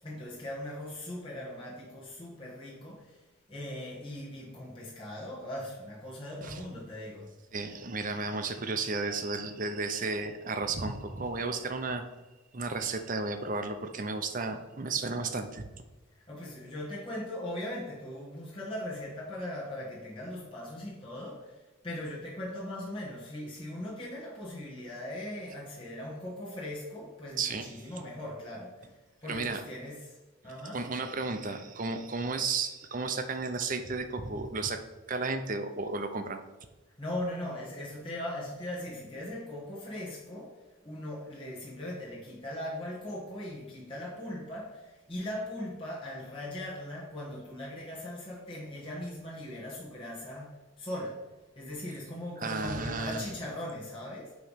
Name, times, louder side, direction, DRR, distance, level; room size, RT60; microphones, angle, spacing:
voice 1, 0.0-3.2 3.5-7.3 16.1-30.2 30.4-30.8 37.0-51.2 51.5-54.4, left 1 dB, 25° left, 1.5 m, -39 dB
voice 2, 7.5-12.0 12.5-15.7 25.5-25.6 27.4-27.9 29.3-29.6 30.7-34.8 35.1-36.4 52.4-53.3, right 3 dB, 40° right, 0.7 m, -33 dB
9.0 x 3.2 x 5.7 m
head